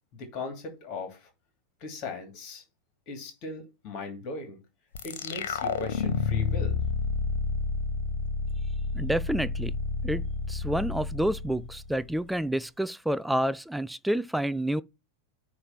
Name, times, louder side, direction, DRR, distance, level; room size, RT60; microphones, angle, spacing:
voice 1, 0.1-1.3 1.8-2.6 3.1-4.6 5.0-6.8, left 3 dB, 40° left, 2.8 m, -38 dB
sound 1, 4.9-12.2, left 5 dB, 60° left, 0.9 m, -30 dB
voice 2, 8.9-9.7 10.0-10.2 10.5-14.8, right 1 dB, 5° right, 0.4 m, -29 dB
9.7 x 3.3 x 5.8 m
figure-of-eight pair, 90°, 0 cm